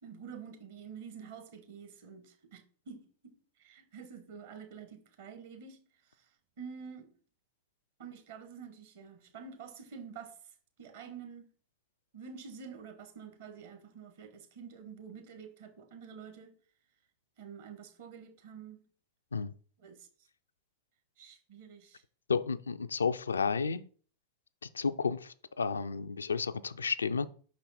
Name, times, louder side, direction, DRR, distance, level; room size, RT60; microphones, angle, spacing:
voice 1, 0.0-6.3 6.6-7.1 8.0-11.4 12.1-16.5 17.4-18.8 19.8-20.1 21.2-22.0, right 6 dB, 55° right, 1.2 m, -48 dB
voice 2, 22.3-23.8 24.6-27.3, left 5 dB, 75° left, 0.3 m, -32 dB
5.6 x 4.3 x 4.1 m
figure-of-eight pair, 90°, 0 cm